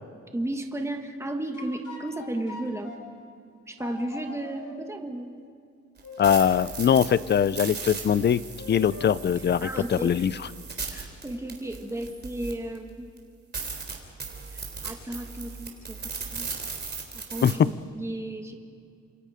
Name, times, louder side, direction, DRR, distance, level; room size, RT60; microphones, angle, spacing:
voice 1, 0.3-2.9 3.7-5.3 9.6-10.2 10.9-13.1 14.5-16.5 17.1-18.5, right 1 dB, 10° right, 4 dB, 1.7 m, -34 dB
sound 1, 1.5-3.0 3.8-4.8 6.0-6.6 8.6-9.1, left 3 dB, 85° left, 4.6 m, -41 dB
sound 2, 6.0-12.8 13.2-13.3 13.5-17.5, right 5 dB, 35° right, 3.3 m, -37 dB
voice 2, 6.2-10.5 17.4-17.7, left 8 dB, 35° left, 18 dB, 0.5 m, -22 dB
29.5 x 27.0 x 5.1 m, 2.4 s
wide cardioid pair, 165°, 29 cm